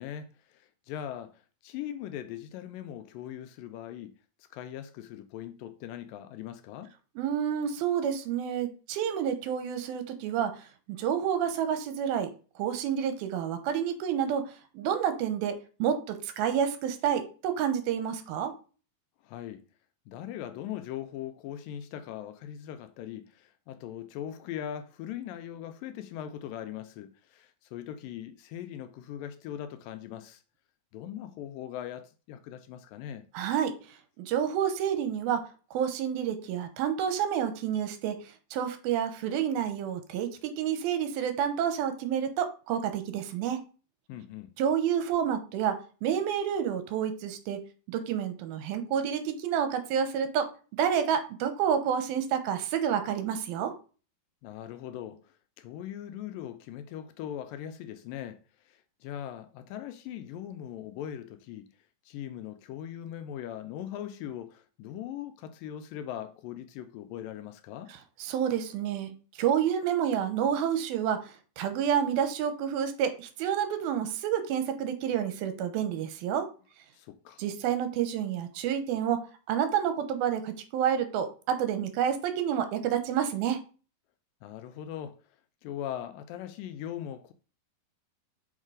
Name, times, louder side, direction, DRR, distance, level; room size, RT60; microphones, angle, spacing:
voice 1, 0.0-4.1 4.4-6.9 19.2-19.6 20.1-30.4 30.9-33.2 44.1-44.5 54.4-61.6 62.1-67.9 76.9-77.4 84.4-85.2 85.6-87.3, left 10 dB, 80° left, 2.1 m, -40 dB
voice 2, 7.2-12.3 12.6-18.5 33.3-33.8 34.2-38.2 38.5-43.6 44.6-47.6 47.9-53.7 68.2-76.5 77.4-83.6, right 8 dB, 85° right, 2.8 m, -29 dB
6.5 x 4.5 x 4.9 m
omnidirectional pair, 4.2 m